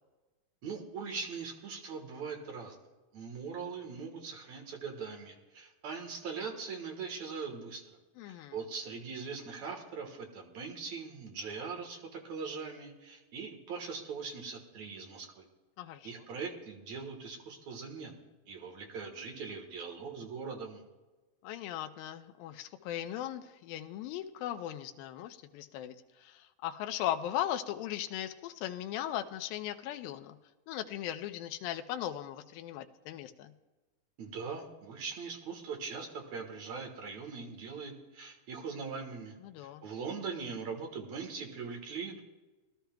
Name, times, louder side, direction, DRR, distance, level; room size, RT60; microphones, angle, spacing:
voice 1, 0.6-2.8 3.1-7.8 8.3-15.5 16.0-18.1 18.5-20.8 34.2-42.2, right 5 dB, 60° right, 2 dB, 2.3 m, -41 dB
voice 2, 8.2-8.6 15.8-16.1 21.4-26.0 26.2-30.4 30.7-33.5 39.4-39.8, left 12 dB, 80° left, 7 dB, 2.3 m, -38 dB
20.5 x 12.5 x 2.3 m, 1.2 s
omnidirectional pair, 4.4 m